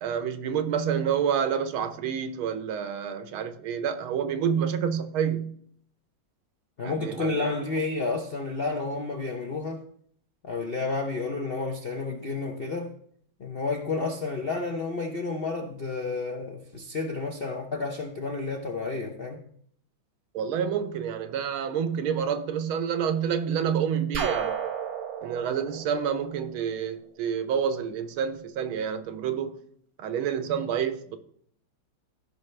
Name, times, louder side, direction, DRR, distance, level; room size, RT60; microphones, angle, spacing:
voice 1, 0.0-5.5 6.8-7.5 20.3-24.6 25.2-29.6 30.0-31.2, right 7 dB, 85° right, 1.7 m, -28 dB
voice 2, 6.8-9.8 10.4-12.9 13.4-19.4, left 3 dB, 60° left, 0.6 m, -31 dB
sound 1, 24.1-26.9, right 7 dB, 55° right, 1.1 m, -32 dB
14.5 x 5.6 x 3.2 m
omnidirectional pair, 2.2 m